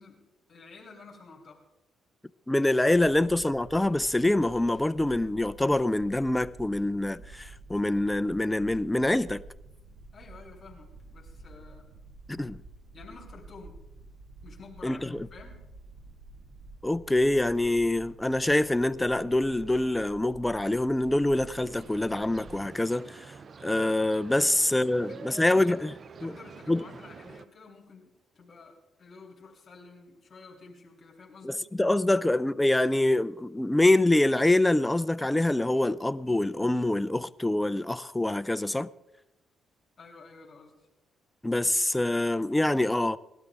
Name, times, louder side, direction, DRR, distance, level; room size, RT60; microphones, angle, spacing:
voice 1, 0.0-1.6 10.1-11.9 12.9-13.8 14.4-15.7 24.4-25.8 26.2-31.7 40.0-40.9, left 4 dB, 45° left, 3.1 m, -51 dB
voice 2, 2.5-9.4 12.3-12.6 14.8-15.3 16.8-23.3 23.6-25.9 26.2-26.3 26.7-26.8 31.4-38.9 41.4-43.2, left 1 dB, 10° left, 0.5 m, -25 dB
sound 1, 2.9-22.6, right 2 dB, 80° right, 2.2 m, -50 dB
sound 2, 21.0-27.4, right 5 dB, 45° right, 0.5 m, -47 dB
19.0 x 12.5 x 3.6 m
cardioid pair, 90°, 0 cm